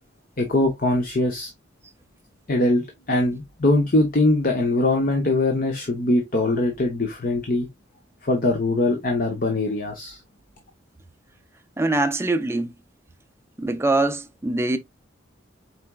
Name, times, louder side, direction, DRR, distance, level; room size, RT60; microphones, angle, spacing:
voice 1, 0.4-1.5 2.5-7.7 8.2-10.2, left 2 dB, 45° left, 0.8 m, -22 dB
voice 2, 11.8-12.7 13.6-14.8, right 2 dB, 15° right, 0.5 m, -23 dB
4.7 x 4.2 x 2.2 m
head